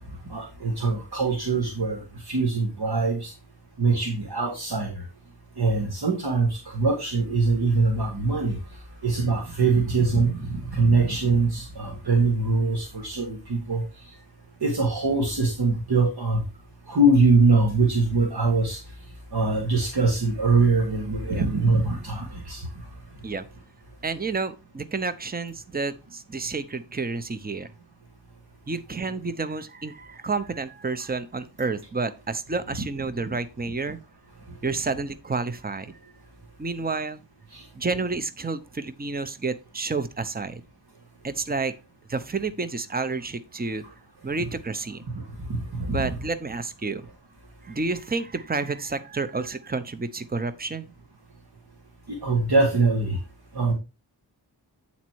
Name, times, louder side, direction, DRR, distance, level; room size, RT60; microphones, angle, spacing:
voice 1, 0.3-2.0 2.3-3.3 3.8-4.9 5.6-8.6 9.0-13.8 14.6-16.4 16.9-18.8 19.3-22.6 37.5-37.6 45.1-45.2 45.5-46.2 52.1-53.2 53.5-53.7, right 3 dB, 60° right, 0 dB, 2.1 m, -23 dB
voice 2, 24.0-27.7 28.7-34.0 34.6-36.0 36.6-37.2 37.7-40.6 41.2-41.7 42.1-43.8 44.2-45.0 45.9-47.1 47.6-50.9, right 4 dB, 20° right, 12 dB, 0.8 m, -30 dB
8.8 x 4.2 x 4.6 m, 0.28 s
wide cardioid pair, 60°, 43 cm